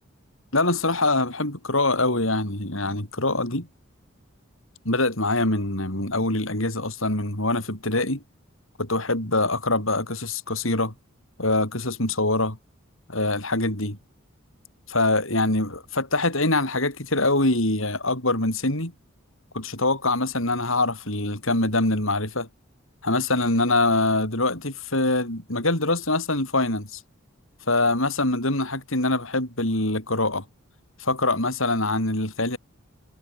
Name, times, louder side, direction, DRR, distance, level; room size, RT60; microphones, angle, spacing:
voice 1, 0.5-3.7 4.8-8.2 8.8-10.9 11.4-12.6 13.1-14.0 14.9-18.9 19.5-22.5 23.0-27.0 27.7-30.4 31.0-32.6, left 2 dB, 75° left, 6.8 m, -24 dB
head